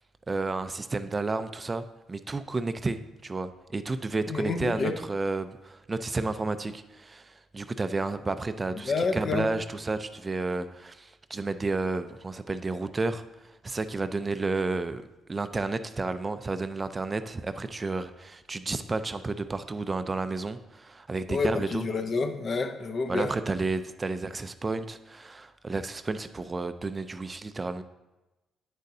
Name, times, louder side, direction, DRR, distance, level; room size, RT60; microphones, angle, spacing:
voice 1, 0.3-15.0 15.3-21.9 23.1-27.8, right 3 dB, 25° right, 11 dB, 0.4 m, -31 dB
voice 2, 4.3-4.9 8.8-9.5 21.3-23.3, left 4 dB, 50° left, 8 dB, 0.6 m, -29 dB
9.1 x 6.5 x 2.7 m, 1.0 s
cardioid pair, 90°, 0 cm